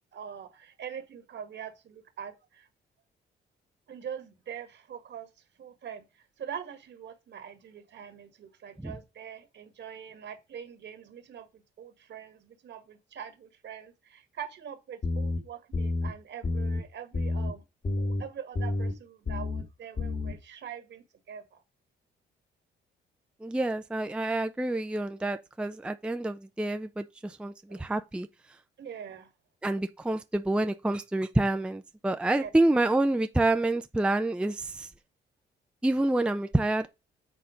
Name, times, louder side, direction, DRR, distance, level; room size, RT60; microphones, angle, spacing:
voice 1, 0.1-2.7 3.9-5.3 5.6-17.6 18.0-21.6 27.7-27.9 28.8-29.3 32.4-32.5, right 8 dB, 65° right, 1.7 m, -43 dB
sound 1, 15.0-15.4 15.7-16.1 16.4-16.8 17.1-17.5 17.8-18.2 18.6-18.9 19.3-19.6 20.0-20.3, left 2 dB, 40° left, 2.1 m, -29 dB
voice 2, 23.4-28.3 29.6-34.9 35.8-36.9, right 2 dB, 5° right, 0.5 m, -28 dB
7.9 x 4.0 x 5.0 m
cardioid pair, 90°, 20 cm